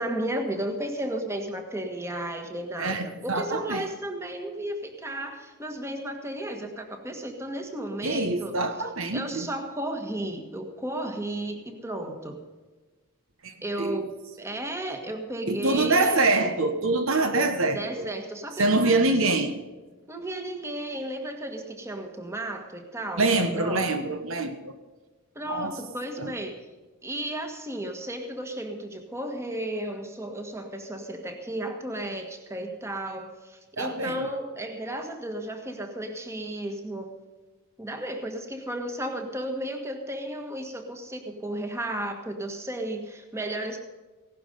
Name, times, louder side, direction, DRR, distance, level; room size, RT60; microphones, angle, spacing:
voice 1, 0.0-8.5 9.1-12.4 13.6-14.1 14.4-16.2 17.7-19.2 20.1-23.9 25.3-26.7 27.0-37.1 37.8-43.8, right 1 dB, 10° right, 5 dB, 1.6 m, -34 dB
voice 2, 2.8-3.8 8.0-9.5 13.4-14.0 15.5-18.1 18.6-19.5 23.2-24.7 25.5-25.7 26.2-26.3 33.8-34.3, right 2 dB, 65° right, 8 dB, 1.1 m, -25 dB
16.5 x 12.0 x 5.3 m, 1.3 s
head